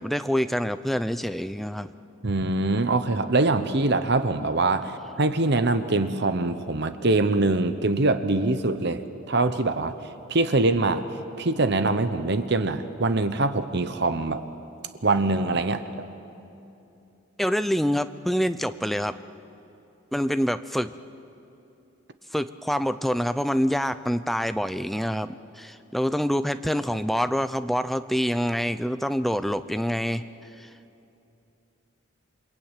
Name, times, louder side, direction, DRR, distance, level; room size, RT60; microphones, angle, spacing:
voice 1, 0.0-1.9 17.4-19.2 20.1-20.9 22.3-25.3 25.6-30.2 30.6-30.7, equal, ahead, 11 dB, 0.5 m, -26 dB
voice 2, 2.2-9.9 10.3-11.1 11.4-14.4 15.0-15.8, right 2 dB, 55° right, 10 dB, 1.0 m, -23 dB
28.5 x 22.0 x 9.1 m, 2.8 s
head